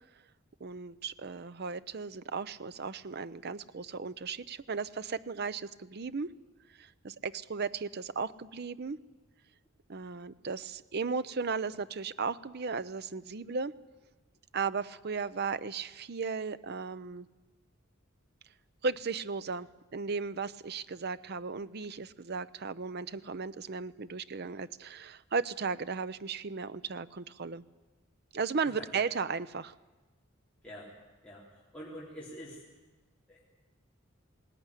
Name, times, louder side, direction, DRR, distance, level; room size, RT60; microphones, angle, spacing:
voice 1, 0.6-6.3 6.8-9.0 9.9-13.7 14.5-17.3 18.8-27.6 28.3-29.7, right 5 dB, 50° right, 14 dB, 0.6 m, -36 dB
voice 2, 31.7-32.6 33.3-33.4, equal, 5° left, -6 dB, 3.7 m, -45 dB
20.0 x 18.5 x 9.9 m, 1.2 s
head